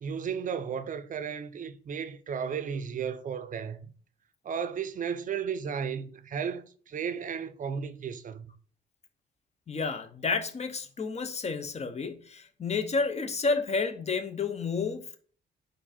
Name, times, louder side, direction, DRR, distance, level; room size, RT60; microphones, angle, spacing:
voice 1, 0.0-3.9 4.4-8.5, right 7 dB, 40° right, 0.6 m, -34 dB
voice 2, 9.7-15.2, left 4 dB, 35° left, 0.8 m, -30 dB
4.4 x 2.6 x 4.2 m
cardioid pair, 90°, 20 cm